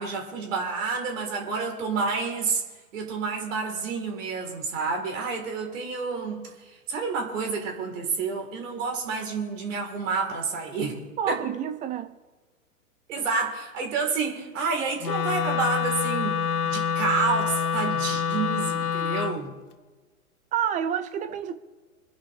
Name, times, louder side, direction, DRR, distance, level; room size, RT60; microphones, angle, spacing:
voice 1, 0.0-2.6 2.9-11.0 11.3-11.4 13.1-19.5, right 4 dB, 55° right, 4.2 m, -29 dB
voice 2, 11.2-12.1 20.5-21.5, right 9 dB, 15° right, 0.7 m, -28 dB
Wind instrument woodwind instrument, 15.0-19.4, left 7 dB, 75° left, 1.1 m, -27 dB
26.0 x 10.5 x 3.5 m
hypercardioid pair, 120°, 45 cm